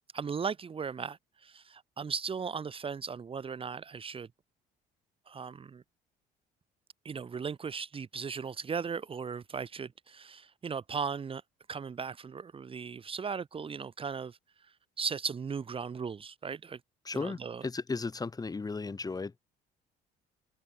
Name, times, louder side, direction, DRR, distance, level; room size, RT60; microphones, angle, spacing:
voice 1, 0.1-4.3 5.3-5.8 7.0-11.4 11.7-14.4 15.0-16.8 17.1-17.6, right 6 dB, 30° right, 2.1 m, -37 dB
voice 2, 17.1-19.4, left 4 dB, 20° left, 5.2 m, -35 dB
cardioid pair, 110°, 17 cm